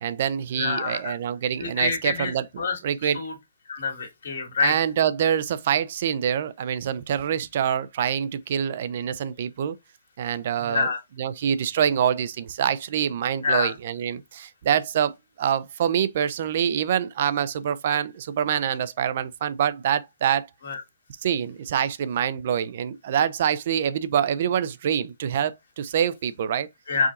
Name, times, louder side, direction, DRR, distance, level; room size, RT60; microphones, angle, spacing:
voice 1, 0.0-3.2 4.6-9.8 10.2-20.5 21.2-26.7, right 9 dB, 50° right, 0.4 m, -25 dB
voice 2, 0.6-1.1 1.6-2.3 2.6-2.8 3.1-3.3 3.7-4.7 10.7-11.0 13.4-13.7 20.6-20.8 26.9-27.1, left 5 dB, 70° left, 1.7 m, -26 dB
4.8 x 2.6 x 2.5 m
figure-of-eight pair, 130°, 0 cm